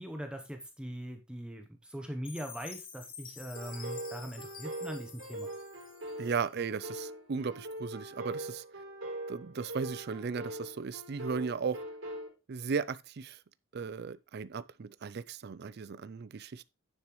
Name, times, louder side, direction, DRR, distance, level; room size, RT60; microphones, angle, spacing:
voice 1, 0.0-5.5, equal, 5° right, 0.9 m, -41 dB
Chime, 2.2-6.5, left 7 dB, 45° left, 1.6 m, -49 dB
sound 1, 3.6-12.3, right 1 dB, 70° right, 3.3 m, -42 dB
voice 2, 6.2-8.6 9.3-11.8 12.5-13.4 13.7-16.6, right 5 dB, 55° right, 0.4 m, -36 dB
9.6 x 7.3 x 3.1 m
head